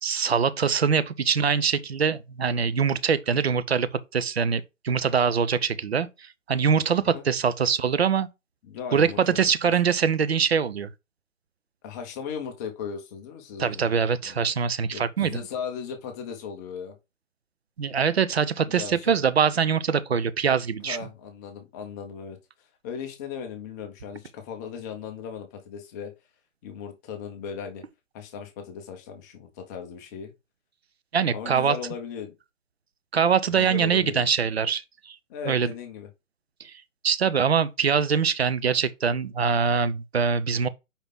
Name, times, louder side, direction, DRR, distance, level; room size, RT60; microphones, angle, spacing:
voice 1, 0.0-8.3 8.9-10.9 13.6-15.4 17.8-21.0 31.1-31.8 33.1-35.2 35.5-35.7 36.6-40.7, right 6 dB, 55° right, 0.8 m, -23 dB
voice 2, 8.6-9.2 11.8-13.9 14.2-14.4 14.9-16.9 18.7-19.2 20.8-22.4 22.8-26.1 26.6-27.8 28.1-30.3 31.3-32.4 33.5-34.3 35.3-36.1, left 7 dB, 15° left, 0.7 m, -37 dB
5.3 x 4.9 x 3.7 m
figure-of-eight pair, 130°, 39 cm